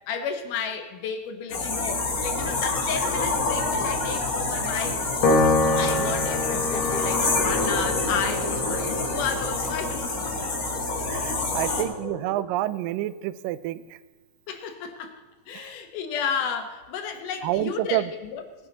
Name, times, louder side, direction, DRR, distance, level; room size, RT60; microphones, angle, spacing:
voice 1, 0.1-5.0 5.8-10.4 11.5-12.2 14.5-15.1 15.5-18.4, left 6 dB, 75° left, 5 dB, 2.7 m, -32 dB
sound 1, 1.5-11.8, left 3 dB, 35° left, 1.5 m, -27 dB
sound 2, 2.3-9.9, left 5 dB, 30° right, 1.3 m, -43 dB
Piano, 5.2-11.8, left 2 dB, 55° left, 1.5 m, -27 dB
voice 2, 5.8-6.1 11.1-14.0 15.5-15.7 17.4-18.1, right 14 dB, 85° right, 16 dB, 2.2 m, -29 dB
19.5 x 9.8 x 4.0 m, 1.3 s
omnidirectional pair, 3.8 m